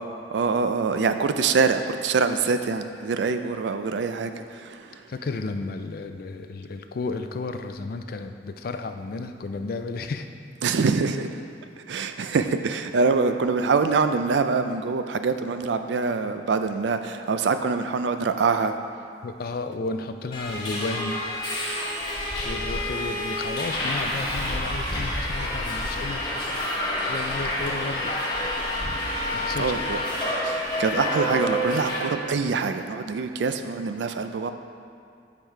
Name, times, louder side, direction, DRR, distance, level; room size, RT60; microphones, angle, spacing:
voice 1, 0.0-5.0 10.6-11.4 11.9-18.7 29.6-30.0 30.4-34.5, right 4 dB, 85° right, 8 dB, 0.4 m, -25 dB
voice 2, 5.1-10.3 19.2-21.2 22.4-26.5 27.1-28.1 29.3-29.8, left 3 dB, 55° left, 7 dB, 0.4 m, -33 dB
Subway metro underground, 20.3-32.0, left 1 dB, 25° left, 1.2 m, -28 dB
7.4 x 4.9 x 4.5 m, 2.5 s
head